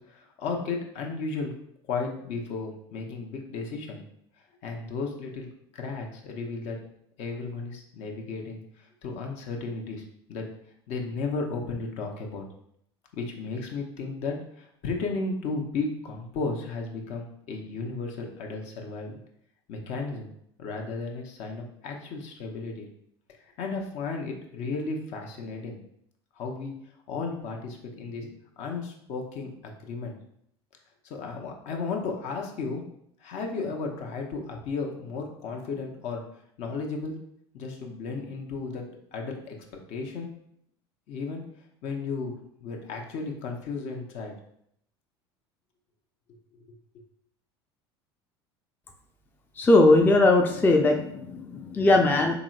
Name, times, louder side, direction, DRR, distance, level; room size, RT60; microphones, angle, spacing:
voice 1, 0.1-1.5 1.9-4.0 4.6-5.5 5.7-6.8 7.2-8.6 9.0-10.0 10.3-10.5 10.9-12.4 13.1-19.2 19.7-20.3 20.6-22.9 23.6-25.8 26.3-26.7 27.1-30.2 31.0-32.8 33.2-36.2 36.6-37.2 37.5-40.3 41.1-41.4 41.8-44.4 46.5-46.6, left 4 dB, 55° left, 2 dB, 0.8 m, -34 dB
voice 2, 49.6-52.4, left 2 dB, 15° left, 2 dB, 0.4 m, -20 dB
3.9 x 3.1 x 2.4 m, 0.71 s
hypercardioid pair, 75°, 14 cm